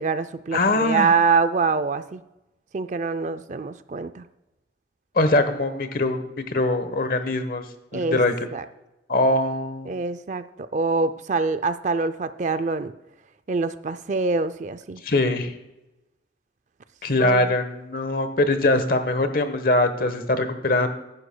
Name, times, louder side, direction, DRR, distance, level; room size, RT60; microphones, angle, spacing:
voice 1, 0.0-2.2 2.7-4.3 7.9-8.2 8.5-8.6 9.9-12.9 13.5-15.0 17.2-17.5, right 4 dB, 40° right, 13 dB, 0.4 m, -25 dB
voice 2, 0.5-1.1 5.1-6.2 6.5-7.6 7.9-8.3 9.1-9.9 15.0-15.5 17.0-20.9, left 2 dB, 50° left, 9 dB, 1.1 m, -22 dB
14.5 x 11.0 x 2.2 m, 0.97 s
head